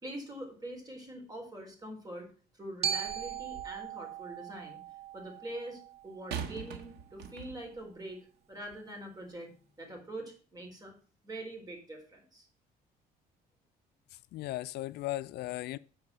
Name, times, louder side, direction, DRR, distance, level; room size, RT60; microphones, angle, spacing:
voice 1, 0.0-2.3 2.6-4.8 5.1-9.5 9.8-10.9 11.2-12.5, right 1 dB, 20° right, 4.0 m, -44 dB
Glockenspiel, 2.8-6.9, right 9 dB, 40° right, 0.5 m, -39 dB
sound 1, 3.1-3.9 6.3-7.8 8.6-8.8, right 7 dB, 80° right, 1.5 m, -42 dB
voice 2, 14.1-15.8, left 16 dB, 75° left, 0.4 m, -37 dB
8.2 x 4.9 x 7.3 m
cardioid pair, 110°, 17 cm